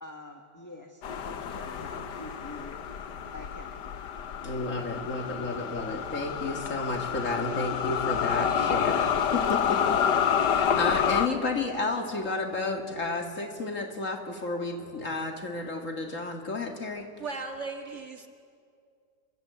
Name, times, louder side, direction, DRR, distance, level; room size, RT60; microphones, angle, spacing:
voice 1, 0.0-2.8 3.3-4.1, left 1 dB, 10° left, 3 dB, 1.4 m, -46 dB
sound 1, 1.0-11.3, left 8 dB, 85° left, 1.7 m, -28 dB
voice 2, 4.4-17.1, left 3 dB, 50° left, 3 dB, 2.4 m, -32 dB
voice 3, 17.2-18.3, right 4 dB, 45° right, 4 dB, 1.9 m, -36 dB
28.0 x 23.0 x 8.3 m, 2.3 s
omnidirectional pair, 1.8 m